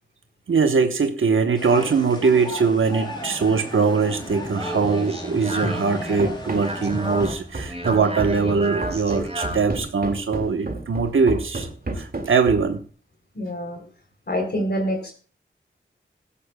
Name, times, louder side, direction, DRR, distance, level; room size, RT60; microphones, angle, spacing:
voice 1, 0.5-11.7 11.9-12.8, right 5 dB, 85° right, 7 dB, 1.0 m, -21 dB
sound 1, 1.6-7.3, left 1 dB, 20° left, 4.0 m, -34 dB
Speech, 4.3-9.7, right 1 dB, 30° right, 4.8 m, -33 dB
Run, 6.2-12.8, right 2 dB, 50° right, 2.1 m, -32 dB
voice 2, 13.3-13.8 14.3-15.1, equal, 55° left, 3 dB, 3.2 m, -26 dB
15.5 x 13.0 x 2.2 m, 0.39 s
wide cardioid pair, 70°, 20 cm